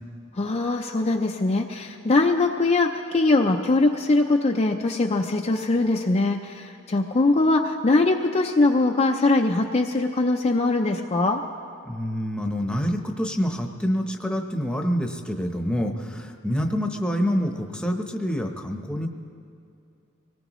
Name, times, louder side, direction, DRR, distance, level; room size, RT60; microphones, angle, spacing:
voice 1, 0.3-11.4, left 2 dB, 30° left, 2 dB, 0.5 m, -22 dB
voice 2, 11.8-19.1, equal, 5° left, 3 dB, 0.9 m, -27 dB
24.0 x 18.0 x 3.1 m, 2.6 s
head